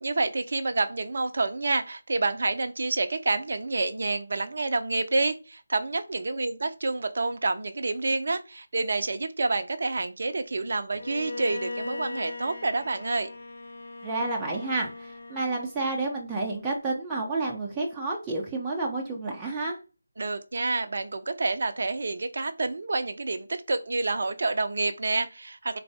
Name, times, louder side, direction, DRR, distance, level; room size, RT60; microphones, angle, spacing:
voice 1, 0.0-13.3 20.2-25.8, right 3 dB, 50° right, 0.6 m, -28 dB
Bowed string instrument, 10.9-16.0, left 2 dB, 50° left, 0.7 m, -39 dB
voice 2, 14.0-19.8, right 3 dB, 10° right, 0.7 m, -30 dB
3.9 x 3.3 x 3.5 m
figure-of-eight pair, 160°, 0 cm